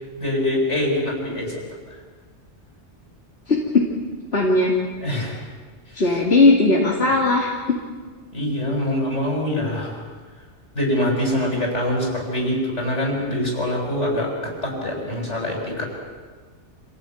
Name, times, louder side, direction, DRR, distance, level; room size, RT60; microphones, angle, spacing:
voice 1, 0.2-1.5 5.0-5.4 5.9-6.2 8.3-10.0 10.8-15.8, left 1 dB, 80° left, 0 dB, 7.1 m, -24 dB
voice 2, 3.5-3.8 4.3-4.7 5.9-7.5, left 2 dB, 65° left, -3 dB, 2.9 m, -17 dB
27.0 x 17.0 x 9.3 m, 1.5 s
omnidirectional pair, 1.2 m